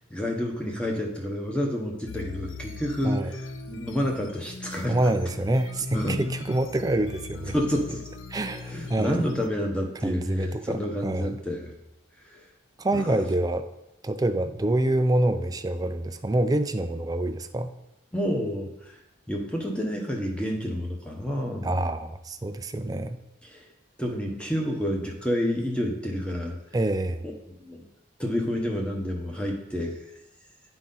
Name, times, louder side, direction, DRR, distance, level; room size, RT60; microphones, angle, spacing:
voice 1, 0.0-3.4 3.7-5.0 5.9-6.3 7.5-8.0 8.7-11.7 12.2-12.4 12.9-13.2 18.1-19.0 19.3-21.8 23.4-23.6 24.0-26.6 27.5-27.8 28.2-30.0, equal, 5° left, 0 dB, 0.9 m, -29 dB
sound 1, 2.1-9.5, left 3 dB, 90° left, 0.5 m, -39 dB
voice 2, 4.9-7.5 8.3-9.2 10.0-11.4 12.8-13.7 14.0-17.7 21.6-23.2 26.7-27.2, right 1 dB, 20° right, 9 dB, 0.3 m, -26 dB
10.5 x 4.0 x 3.9 m, 0.89 s
head